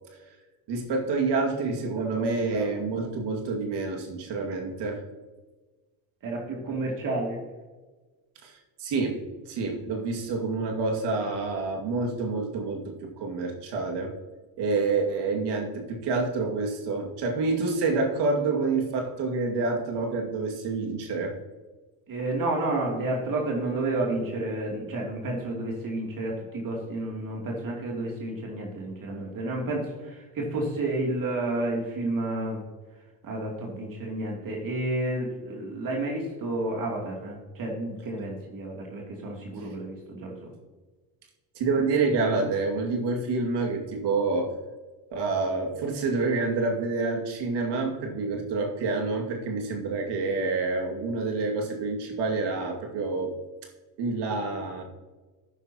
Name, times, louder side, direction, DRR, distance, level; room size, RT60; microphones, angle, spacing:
voice 1, 0.7-5.0 8.4-14.1 14.6-21.3 41.6-44.5 45.1-53.3 54.0-54.8, right 3 dB, 65° right, 1 dB, 2.3 m, -28 dB
voice 2, 2.0-2.7 6.2-7.4 22.1-32.6 33.2-40.5, right 2 dB, 50° right, -1 dB, 2.9 m, -31 dB
12.5 x 9.8 x 2.9 m, 1.3 s
supercardioid pair, 95°, 43 cm